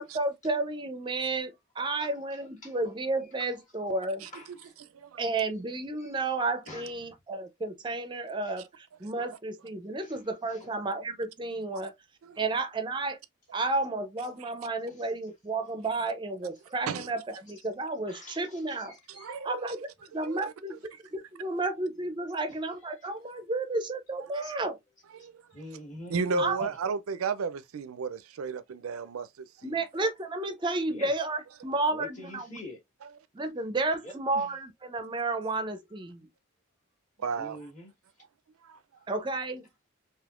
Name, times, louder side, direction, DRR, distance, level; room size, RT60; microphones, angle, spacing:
voice 1, 0.0-4.3 5.2-11.9 12.4-13.2 13.5-19.0 19.4-19.9 20.1-24.8 26.4-26.7 29.6-32.6 33.3-36.3 39.1-39.6, right 2 dB, 20° right, 0.4 m, -32 dB
voice 2, 4.3-4.7 6.0-6.1 6.7-7.1 10.0-10.2 10.5-10.7 14.9-15.1 18.1-19.5 24.4-24.5 25.5-26.7 30.9-31.1 31.9-32.8 34.0-34.5 37.3-37.9, left 1 dB, 35° left, 1.4 m, -46 dB
voice 3, 19.1-19.8 20.2-20.5 25.1-25.3 26.1-29.8 33.0-33.1 37.2-37.6 38.6-38.8, right 4 dB, 85° right, 0.4 m, -33 dB
3.4 x 2.8 x 2.3 m
head